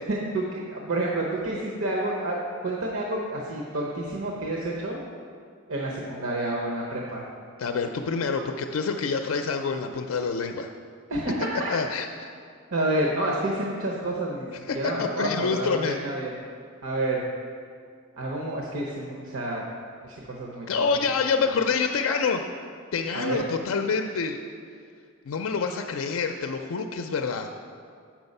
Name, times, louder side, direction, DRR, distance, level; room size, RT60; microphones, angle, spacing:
voice 1, 0.1-5.0 5.7-7.2 11.1-11.7 12.7-14.5 14.7-16.3 16.8-17.2 18.2-19.6 20.0-20.8 23.1-23.4, right 1 dB, 80° right, -2 dB, 0.9 m, -29 dB
voice 2, 7.6-10.7 11.7-12.3 14.6-16.0 20.7-22.4 22.9-24.4 25.2-27.5, left 5 dB, 85° left, 6 dB, 0.4 m, -27 dB
7.8 x 6.1 x 5.3 m, 2.2 s
head